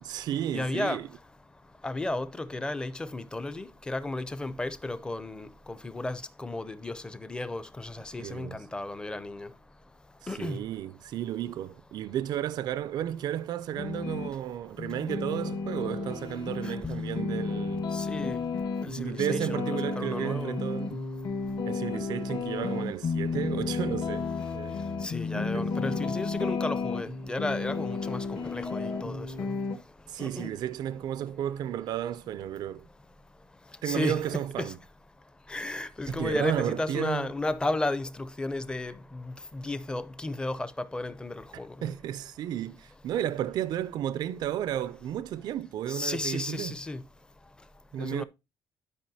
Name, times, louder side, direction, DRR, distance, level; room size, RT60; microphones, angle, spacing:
voice 1, 0.0-1.1 8.2-8.6 10.2-17.9 19.0-21.0 21.7-24.8 25.3-26.1 30.1-32.9 33.8-34.8 36.1-37.3 41.8-46.7 47.9-48.2, right 11 dB, 60° right, 0.4 m, -33 dB
voice 2, 0.5-1.0 1.8-9.5 10.3-10.6 17.9-18.4 18.8-20.6 25.0-29.3 30.2-30.5 33.9-34.7 35.5-38.1 38.4-39.2 39.5-41.4 45.9-47.0 48.0-48.2, left 2 dB, 10° left, 0.5 m, -33 dB
sound 1, 13.8-14.3 14.8-29.8, left 4 dB, 55° left, 1.3 m, -32 dB
12.0 x 5.1 x 2.7 m
cardioid pair, 165°, 8 cm